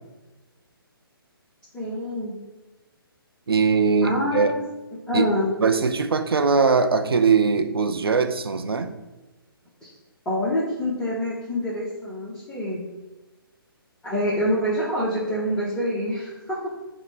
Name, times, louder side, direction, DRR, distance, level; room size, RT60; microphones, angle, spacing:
voice 1, 1.7-2.3 4.0-4.5 5.1-5.5 9.8-9.9 10.3-12.8 14.0-16.6, left 1 dB, 5° left, -9 dB, 0.7 m, -26 dB
voice 2, 3.5-4.5 5.1-5.3 5.6-8.9, right 5 dB, 75° right, 8 dB, 0.4 m, -21 dB
4.2 x 2.1 x 4.5 m, 1.1 s
figure-of-eight pair, 135°, 13 cm